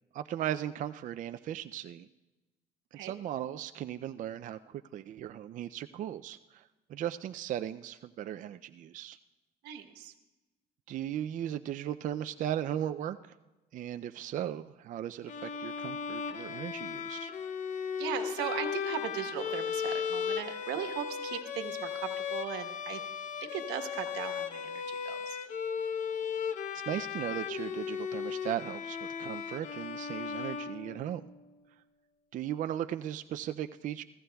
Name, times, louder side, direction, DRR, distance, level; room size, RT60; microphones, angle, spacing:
voice 1, 0.1-2.1 3.0-6.6 6.9-9.2 10.9-13.2 13.7-17.3 26.9-31.2 32.3-34.0, right 11 dB, 50° right, 9 dB, 0.4 m, -37 dB
voice 2, 9.6-10.1 18.0-23.0 23.4-25.4, right 10 dB, 90° right, 6 dB, 1.2 m, -38 dB
Bowed string instrument, 15.3-31.4, left 7 dB, 50° left, 0.7 m, -36 dB
25.5 x 15.5 x 2.3 m, 1.1 s
cardioid pair, 110°, 17 cm